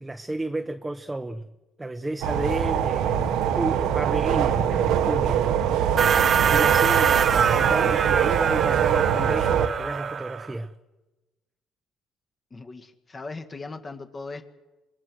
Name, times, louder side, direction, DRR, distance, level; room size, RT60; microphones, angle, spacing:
voice 1, 0.0-1.5 1.8-6.0 6.5-10.7, right 2 dB, 15° right, 1.1 m, -32 dB
sound 1, 2.2-9.7, right 9 dB, 80° right, 1.4 m, -23 dB
sound 2, 6.0-10.5, right 7 dB, 45° right, 1.4 m, -23 dB
voice 2, 12.5-14.4, left 3 dB, 30° left, 1.9 m, -38 dB
26.0 x 21.0 x 6.4 m
cardioid pair, 95°, 0 cm